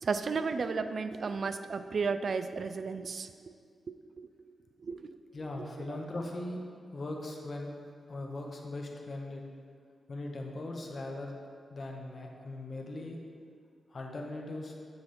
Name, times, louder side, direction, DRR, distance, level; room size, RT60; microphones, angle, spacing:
voice 1, 0.0-3.3 3.9-4.3 4.8-5.2, right 4 dB, 55° right, 10 dB, 0.3 m, -33 dB
voice 2, 5.3-6.6 6.9-7.8 8.1-9.4 10.1-11.3 11.7-13.2 13.9-14.7, left 2 dB, 45° left, 1 dB, 0.9 m, -39 dB
9.4 x 3.3 x 4.3 m, 2.2 s
cardioid pair, 100°, 0 cm